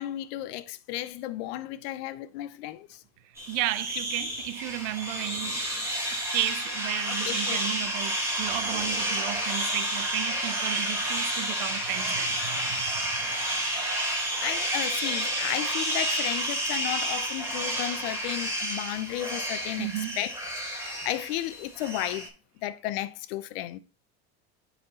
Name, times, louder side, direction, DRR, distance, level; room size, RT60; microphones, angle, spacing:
voice 1, 0.0-3.0 7.1-7.6 14.4-20.3 20.8-22.3 22.6-23.8, left 14 dB, 80° left, 0.7 m, -34 dB
sound 1, 3.4-22.3, right 1 dB, 10° right, 3.2 m, -30 dB
voice 2, 3.5-5.6 6.3-12.8 19.8-20.2, right 15 dB, 70° right, 0.8 m, -33 dB
9.4 x 4.3 x 4.2 m
supercardioid pair, 120°, 31 cm